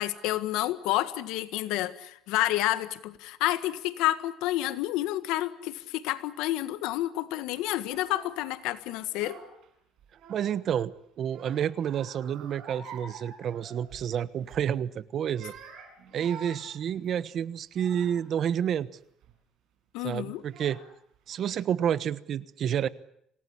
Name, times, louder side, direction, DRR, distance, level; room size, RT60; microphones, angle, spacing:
voice 1, 0.0-9.4 19.9-20.4, left 15 dB, 85° left, 13 dB, 1.6 m, -29 dB
Child speech kid speaking / Crying sobbing, 7.8-8.4 9.0-9.7 10.0-10.8 11.3-14.1 14.4-14.7 15.2-18.3 19.0-19.3 20.1-20.2 20.5-21.2, right 5 dB, 65° right, 7.6 m, -48 dB
voice 2, 10.3-15.5 16.1-18.9 20.0-20.8 21.3-22.9, right 9 dB, 50° right, 16 dB, 1.1 m, -29 dB
27.0 x 18.5 x 10.0 m, 0.74 s
cardioid pair, 125°, 0 cm